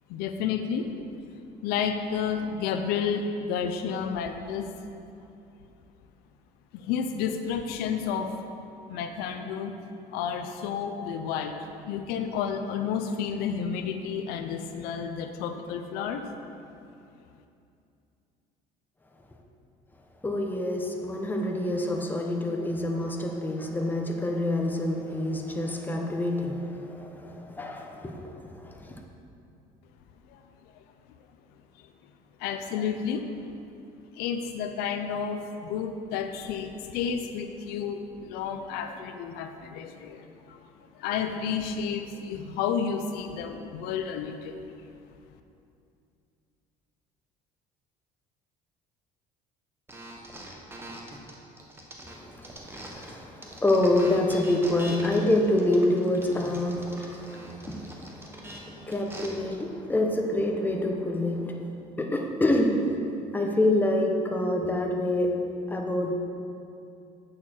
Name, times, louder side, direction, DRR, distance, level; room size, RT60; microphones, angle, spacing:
voice 1, 0.1-1.0 1.6-4.7 6.7-8.4 8.9-9.7 10.1-11.6 11.9-16.2 30.3-30.4 32.4-33.3 34.2-40.6 41.0-44.8, left 7 dB, 80° left, 7 dB, 0.6 m, -31 dB
voice 2, 20.2-29.0 52.0-61.6 62.0-62.8 63.3-65.4 65.7-66.1, left 1 dB, 10° left, 1 dB, 0.9 m, -27 dB
sound 1, 49.9-53.1 53.4-59.3, right 1 dB, 15° right, 1.2 m, -43 dB
8.5 x 6.5 x 4.4 m, 2.6 s
cardioid pair, 105°, 16 cm